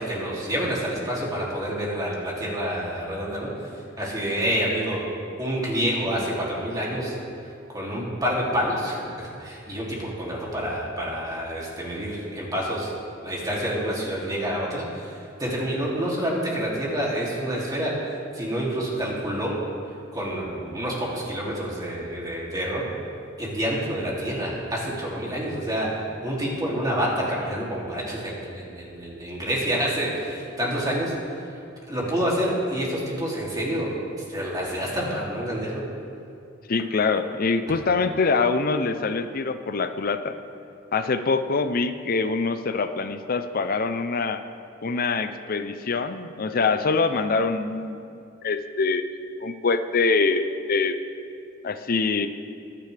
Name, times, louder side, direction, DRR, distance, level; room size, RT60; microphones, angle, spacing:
voice 1, 0.0-3.5 4.0-5.0 5.4-7.1 7.7-12.9 13.2-17.9 18.3-19.5 20.1-22.9 23.4-25.9 26.2-31.4 31.9-34.0 34.3-35.8, equal, 20° right, -5 dB, 2.8 m, -28 dB
voice 2, 36.7-40.3 40.9-44.4 44.8-49.0 49.4-51.0 51.6-52.3, left 4 dB, 50° left, 10 dB, 0.6 m, -24 dB
22.0 x 9.8 x 3.4 m, 2.5 s
head